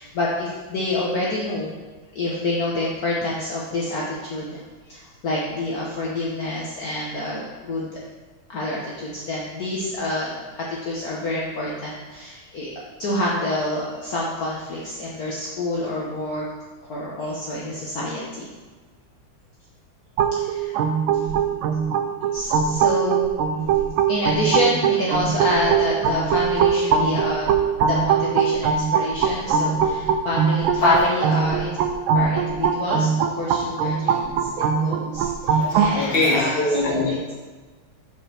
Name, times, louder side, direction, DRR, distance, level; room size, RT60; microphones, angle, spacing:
voice 1, 0.0-1.7 2.1-8.0 8.5-12.7 13.0-16.5 16.9-18.5 20.4-20.8 22.3-23.3 24.1-27.5 27.8-31.8 32.1-37.2, left 1 dB, 55° left, -5 dB, 1.4 m, -28 dB
sound 1, 20.2-35.9, right 6 dB, 90° right, 1.5 m, -22 dB
voice 2, 35.6-37.3, left 2 dB, 30° left, -3 dB, 1.6 m, -21 dB
5.5 x 5.4 x 6.2 m, 1.3 s
omnidirectional pair, 2.2 m